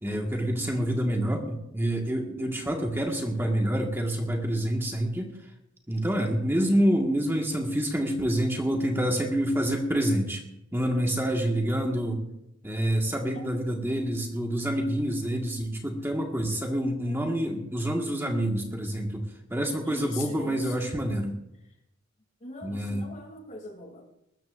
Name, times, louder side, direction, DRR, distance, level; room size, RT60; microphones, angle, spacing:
voice 1, 0.0-5.3 5.9-10.4 10.7-12.2 12.6-19.2 19.5-21.4 22.6-23.1, right 1 dB, 10° right, 0 dB, 1.7 m, -27 dB
voice 2, 19.8-20.9 22.4-24.1, left 3 dB, 40° left, 2 dB, 2.9 m, -42 dB
21.5 x 13.5 x 2.6 m, 0.83 s
head